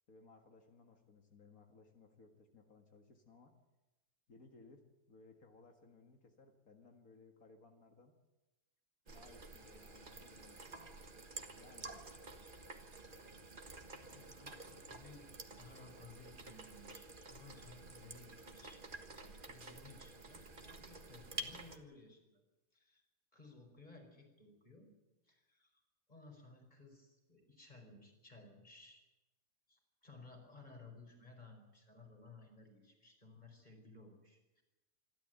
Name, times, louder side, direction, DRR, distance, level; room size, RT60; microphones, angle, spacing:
voice 1, 0.1-3.5 4.3-8.1 9.1-11.1 11.6-12.2, left 3 dB, 70° left, 4 dB, 2.2 m, -62 dB
sound 1, 9.1-21.8, right 2 dB, 35° right, 1.7 m, -51 dB
voice 2, 13.4-15.3 15.6-18.8 19.2-22.4 22.7-23.1 23.3-24.9 25.2-25.8 26.1-29.1 29.7-34.6, left 3 dB, 30° left, 2 dB, 5.2 m, -58 dB
26.5 x 12.5 x 9.2 m, 1.1 s
omnidirectional pair, 1.6 m